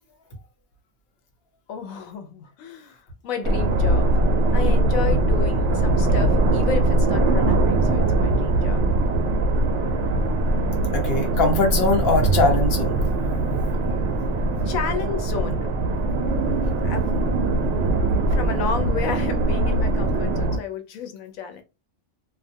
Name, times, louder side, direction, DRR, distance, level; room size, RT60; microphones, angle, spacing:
voice 1, 1.7-4.1 4.5-8.8 14.6-15.6 16.8-17.2 17.6-17.9 18.3-21.6, left 7 dB, 90° left, 1.1 m, -32 dB
sound 1, 3.4-20.6, right 2 dB, 65° right, 0.8 m, -21 dB
voice 2, 10.9-13.0, left 2 dB, 50° left, 1.0 m, -21 dB
2.6 x 2.3 x 2.6 m
omnidirectional pair, 1.4 m